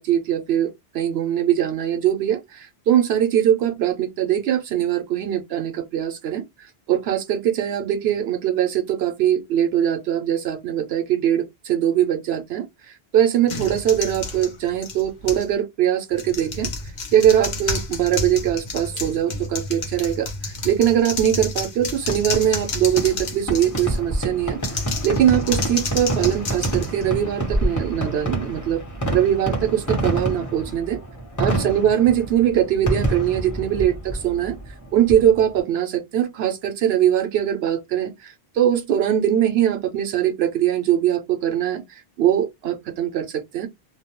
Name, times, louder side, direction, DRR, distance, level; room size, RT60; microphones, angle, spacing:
voice 1, 0.0-16.7 17.1-28.8 29.1-31.0 31.4-34.6 34.9-43.7, right 10 dB, 80° right, 0.8 m, -21 dB
sound 1, 13.5-15.5 16.1-24.0 24.6-27.5, left 3 dB, 50° left, 0.7 m, -30 dB
Fireworks, 22.0-35.6, right 1 dB, 20° left, 0.9 m, -28 dB
2.3 x 2.1 x 2.8 m
omnidirectional pair, 1.0 m